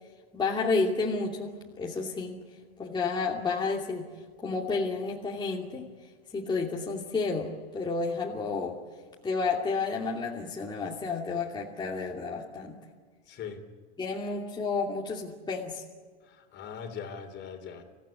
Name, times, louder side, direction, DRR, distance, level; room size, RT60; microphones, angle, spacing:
voice 1, 0.3-2.4 2.8-4.1 4.4-5.9 6.3-8.8 9.2-12.8 14.0-15.8, left 4 dB, 15° left, -3 dB, 2.8 m, -31 dB
voice 2, 13.3-13.6 14.2-14.3 16.2-17.8, left 7 dB, 35° left, 6 dB, 3.7 m, -41 dB
25.5 x 16.5 x 10.0 m, 1.6 s
hypercardioid pair, 115°, 32 cm